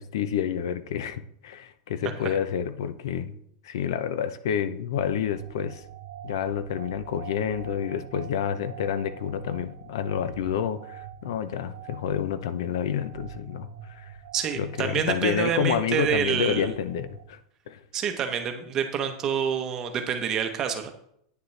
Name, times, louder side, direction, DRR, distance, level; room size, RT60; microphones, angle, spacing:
voice 1, 0.0-3.3 3.6-5.8 6.2-14.1 14.6-17.4 17.7-17.8, left 8 dB, 75° left, 13 dB, 0.6 m, -29 dB
sound 1, 5.3-17.2, right 9 dB, 75° right, 0.8 m, -44 dB
voice 2, 14.3-16.7 17.9-20.9, right 7 dB, 20° right, 6 dB, 0.8 m, -27 dB
9.2 x 7.0 x 3.2 m, 0.70 s
supercardioid pair, 175°, 2 cm